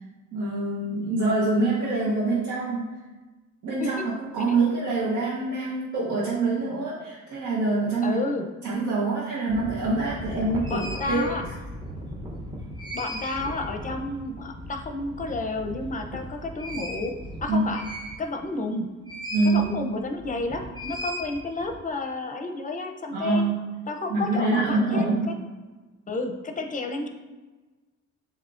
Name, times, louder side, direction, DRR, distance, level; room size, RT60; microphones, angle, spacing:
voice 1, 0.3-2.9 3.6-8.2 8.6-10.8 11.1-11.3 17.5-17.6 19.3-19.8 23.1-23.7 24.1-25.3, right 3 dB, 70° right, -8 dB, 1.3 m, -25 dB
voice 2, 8.0-8.5 10.7-11.4 12.9-17.1 17.4-17.8 18.2-18.9 19.5-23.4 23.9-25.3 26.1-27.1, left 2 dB, 25° left, 5 dB, 0.6 m, -31 dB
sound 1, 9.5-18.5 19.1-19.7 20.0-21.8, equal, 15° right, 0.9 m, -37 dB
7.3 x 2.8 x 2.5 m, 1.2 s
cardioid pair, 90°, 30 cm